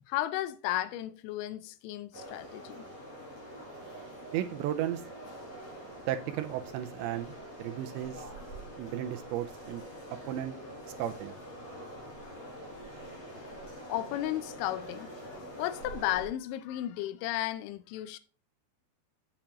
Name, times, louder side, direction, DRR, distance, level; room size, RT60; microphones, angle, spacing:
voice 1, 0.0-2.8 13.6-18.2, left 14 dB, 85° left, 2.9 m, -34 dB
sound 1, 2.1-16.3, right 1 dB, 35° left, 5.5 m, -45 dB
voice 2, 4.3-5.0 6.1-8.3 8.8-9.8 10.3-10.5 11.0-11.3, right 11 dB, 85° right, 2.8 m, -34 dB
8.8 x 8.6 x 3.0 m
omnidirectional pair, 5.4 m